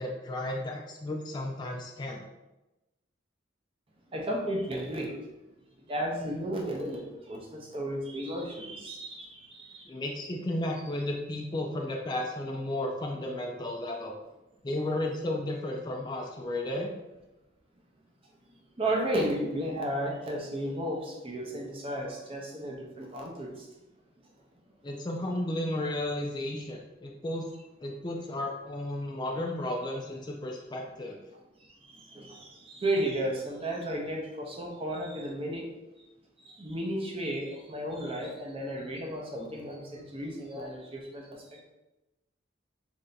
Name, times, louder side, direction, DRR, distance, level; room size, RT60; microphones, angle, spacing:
voice 1, 0.0-2.2 9.9-14.2 14.6-16.9 24.8-27.5 27.8-31.2, left 1 dB, 20° left, 0 dB, 0.3 m, -33 dB
voice 2, 4.1-5.2 5.8-9.9 18.5-23.7 31.9-35.7 36.4-41.6, right 1 dB, 30° right, 0 dB, 0.6 m, -34 dB
3.3 x 2.6 x 3.9 m, 1.0 s
head